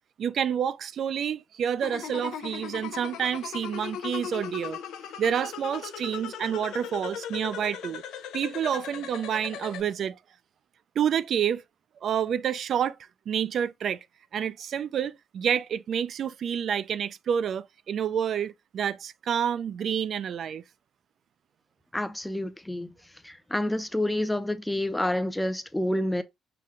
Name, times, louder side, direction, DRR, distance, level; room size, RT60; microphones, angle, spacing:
voice 1, 0.2-4.8 5.2-8.0 8.3-10.2 11.0-11.6 12.0-13.0 13.3-14.0 14.3-20.6, right 8 dB, 60° right, 0.3 m, -28 dB
sound 1, 1.8-9.8, left 8 dB, 90° left, 0.5 m, -38 dB
voice 2, 21.9-22.9 23.2-26.2, left 1 dB, 5° left, 0.5 m, -28 dB
5.7 x 2.2 x 3.7 m
cardioid pair, 90°, 0 cm